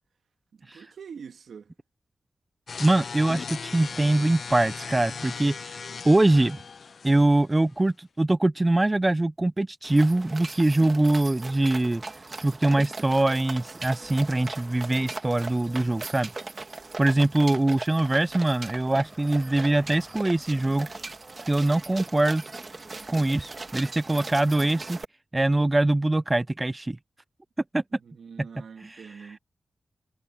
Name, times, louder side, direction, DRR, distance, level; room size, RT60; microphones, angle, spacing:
voice 1, 0.5-1.7 28.0-29.4, right 6 dB, 80° right, 2.2 m, -44 dB
sound 1, 2.7-7.7, left 5 dB, 70° left, 0.4 m, -38 dB
voice 2, 2.8-5.8 6.0-6.6 7.0-12.0 12.4-16.3 17.0-20.9 21.5-22.4 23.1-25.0 25.3-27.0 27.7-27.8 28.8-29.0, right 2 dB, 25° right, 0.5 m, -23 dB
sound 2, 9.8-25.0, right 3 dB, 45° right, 1.9 m, -39 dB
Car passing by / Engine, 16.7-23.2, equal, 5° right, 6.1 m, -54 dB
cardioid pair, 50°, 0 cm